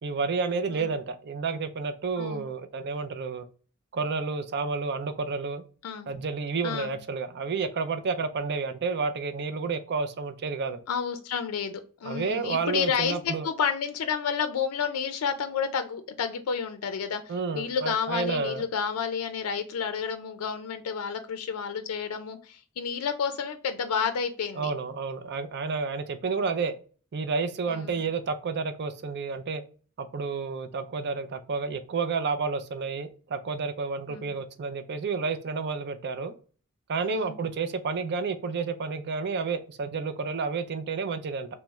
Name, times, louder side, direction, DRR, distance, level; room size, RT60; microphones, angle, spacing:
voice 1, 0.0-3.4 3.9-5.6 6.1-10.8 12.0-13.5 17.3-18.6 24.6-26.7 27.1-29.6 30.0-36.3 36.9-41.5, right 4 dB, 50° right, 10 dB, 0.5 m, -30 dB
voice 2, 6.6-7.0 10.9-24.7 27.7-28.0 34.1-34.3 37.1-37.4, left 6 dB, 85° left, 8 dB, 0.4 m, -30 dB
3.4 x 3.0 x 3.0 m, 0.39 s
head